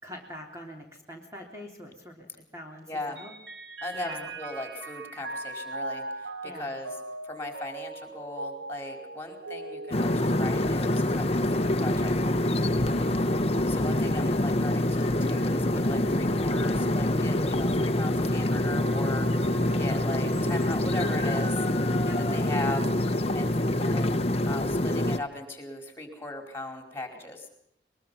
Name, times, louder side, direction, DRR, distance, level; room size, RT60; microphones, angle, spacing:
voice 1, 0.0-3.3 3.9-4.3 6.4-6.7 12.8-13.1 22.0-22.2, left 1 dB, 20° right, 1 dB, 3.4 m, -44 dB
voice 2, 2.9-3.2 3.8-6.9 7.2-12.2 13.6-19.3 19.8-21.5 22.2-22.8 23.3-23.5 23.8-24.2 24.4-27.5, left 2 dB, 15° left, 5 dB, 4.7 m, -38 dB
Mallet percussion, 3.2-10.9, right 2 dB, 90° right, 3.0 m, -39 dB
sound 1, 9.9-25.2, left 1 dB, 35° left, 1.0 m, -26 dB
sound 2, 18.7-25.2, left 1 dB, 60° right, 2.6 m, -45 dB
23.0 x 22.0 x 5.7 m, 0.74 s
head